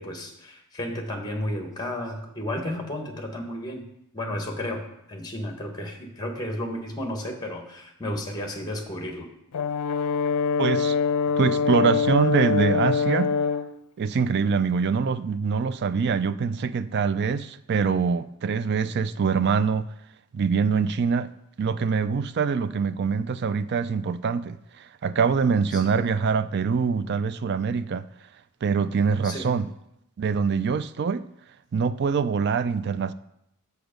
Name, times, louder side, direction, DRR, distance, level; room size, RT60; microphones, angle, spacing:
voice 1, 0.0-9.3 25.7-25.8 29.2-29.5, left 1 dB, 20° left, 1.3 m, -33 dB
Brass instrument, 9.5-13.7, left 5 dB, 90° left, 0.5 m, -24 dB
voice 2, 10.6-11.0 11.4-13.3 14.0-19.9 20.3-21.3 21.6-28.1 28.6-29.6 30.2-31.2 31.7-33.1, right 5 dB, 50° right, 0.4 m, -24 dB
8.0 x 6.9 x 5.1 m
head